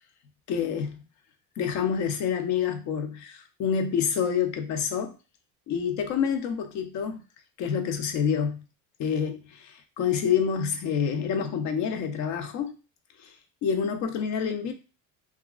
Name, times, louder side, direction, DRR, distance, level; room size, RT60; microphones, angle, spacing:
voice 1, 0.5-1.0 1.6-5.2 5.7-7.2 7.6-8.6 9.0-12.8 13.2-13.3 13.6-14.7, left 7 dB, 50° left, 0.5 m, -27 dB
2.7 x 2.4 x 2.3 m
cardioid pair, 140°, 36 cm